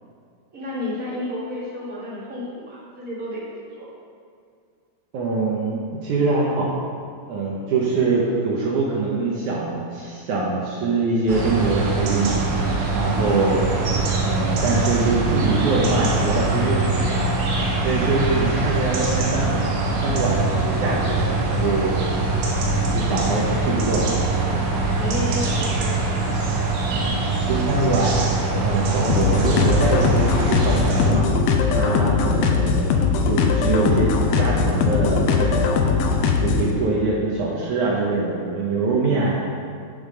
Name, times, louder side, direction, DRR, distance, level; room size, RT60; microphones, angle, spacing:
voice 1, 0.5-3.4 3.7-3.9 25.0-26.5, left 1 dB, 25° right, -8 dB, 2.0 m, -31 dB
voice 2, 5.1-6.7 7.3-12.4 12.9-13.7 14.2-17.3 17.8-19.5 20.0-22.0 22.8-24.3 24.5-24.8 27.5-31.3 31.7-32.9 33.2-35.7 36.4-39.4, right 3 dB, 70° right, -3 dB, 1.9 m, -24 dB
sound 1, 11.3-31.1, right 3 dB, 90° right, 3.4 m, -23 dB
sound 2, 29.1-36.7, left 5 dB, 80° left, 2.4 m, -20 dB
9.2 x 7.1 x 5.2 m, 2.2 s
omnidirectional pair, 4.7 m